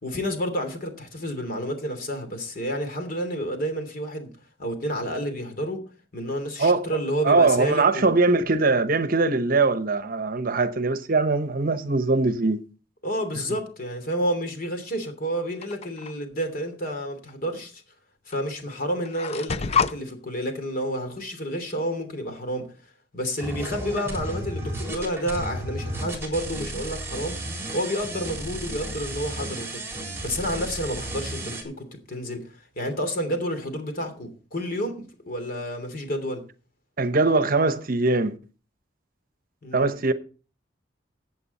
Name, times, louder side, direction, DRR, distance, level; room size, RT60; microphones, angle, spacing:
voice 1, 0.0-4.3 4.6-5.8 6.1-8.2 13.0-17.8 18.3-22.7 23.1-27.4 27.7-29.8 30.2-36.4 39.6-39.9, equal, 55° left, 2.9 m, -30 dB
voice 2, 7.2-12.6 37.0-38.4 39.7-40.1, right 3 dB, 50° right, 0.9 m, -21 dB
sound 1, 15.6-16.1 17.3-17.4 18.3-18.4 18.7-20.0, left 6 dB, 35° left, 0.5 m, -27 dB
sound 2, 23.4-31.6, right 1 dB, 15° right, 4.0 m, -33 dB
15.0 x 8.2 x 4.2 m
head